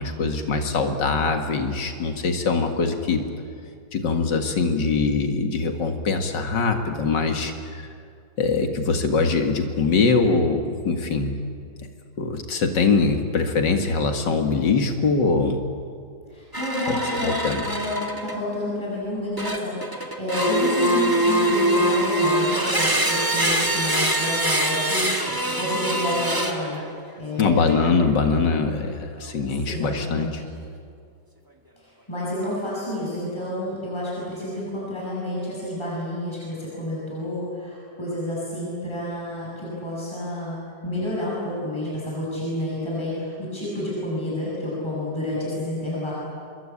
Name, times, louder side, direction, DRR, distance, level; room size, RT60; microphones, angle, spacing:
voice 1, 0.0-3.3 3.9-7.8 8.4-11.4 12.2-15.6 16.9-17.6 27.4-30.4, left 4 dB, 80° left, 5 dB, 2.5 m, -23 dB
voice 2, 16.3-26.8 27.2-27.8 29.6-30.3 31.8-46.1, left 1 dB, 15° left, -6 dB, 7.6 m, -29 dB
sound 1, 16.5-18.5 19.4-26.8 27.6-27.9, right 1 dB, 10° right, 1.9 m, -23 dB
25.5 x 23.0 x 8.7 m, 2.2 s
omnidirectional pair, 1.9 m